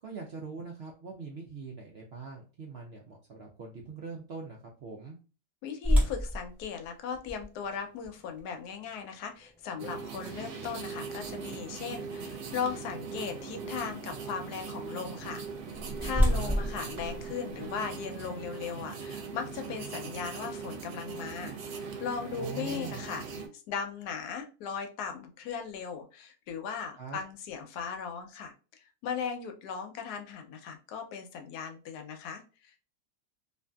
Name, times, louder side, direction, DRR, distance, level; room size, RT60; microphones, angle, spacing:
voice 1, 0.0-5.2 16.2-16.5 22.4-23.0 27.0-27.2, right 5 dB, 70° right, 0 dB, 0.6 m, -42 dB
voice 2, 5.6-23.2 23.7-32.9, left 6 dB, 90° left, 5 dB, 1.2 m, -38 dB
sound 1, 5.8-11.8 12.3-12.4 13.0-13.3 15.3-18.0, equal, ahead, 0.4 m, -31 dB
sound 2, 9.8-23.5, right 5 dB, 85° right, 1.1 m, -40 dB
2.7 x 2.6 x 2.2 m, 0.34 s
omnidirectional pair, 1.6 m